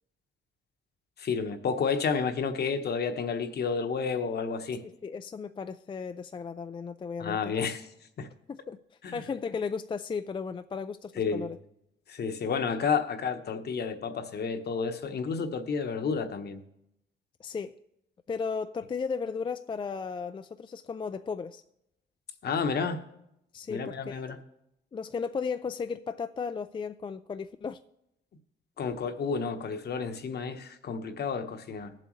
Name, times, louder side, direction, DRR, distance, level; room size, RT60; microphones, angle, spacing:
voice 1, 1.2-4.8 7.2-7.9 8.2-8.3 9.0-9.2 11.2-11.5 12.1-16.6 22.4-23.0 23.7-24.4 28.8-31.9, left 5 dB, 55° left, 8 dB, 1.1 m, -31 dB
voice 2, 4.8-7.5 8.5-8.8 9.1-11.6 17.4-17.7 18.3-21.6 23.5-24.4 24.9-27.8, left 5 dB, 25° left, 9 dB, 0.4 m, -35 dB
18.0 x 7.6 x 3.2 m, 0.81 s
cardioid pair, 90°, 20 cm